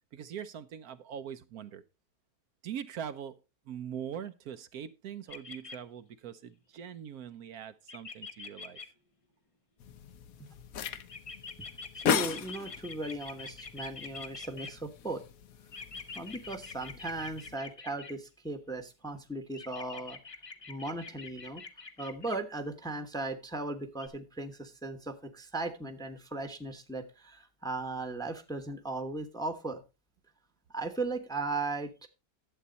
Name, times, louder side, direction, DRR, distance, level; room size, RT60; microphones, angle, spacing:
voice 1, 0.1-1.8 2.6-3.4 3.7-8.8, right 9 dB, 70° right, 11 dB, 1.1 m, -42 dB
sound 1, 5.3-5.8 7.9-8.8 11.1-14.7 15.7-18.1 19.5-22.4 24.0-24.1, left 4 dB, 30° left, 0.6 m, -44 dB
sound 2, 9.8-17.6, left 8 dB, 65° left, 1.2 m, -38 dB
voice 2, 11.9-15.2 16.1-20.2 20.7-21.6 22.0-29.8 30.7-32.1, right 2 dB, 5° left, 8 dB, 0.9 m, -37 dB
11.5 x 8.1 x 4.0 m, 0.28 s
omnidirectional pair, 1.7 m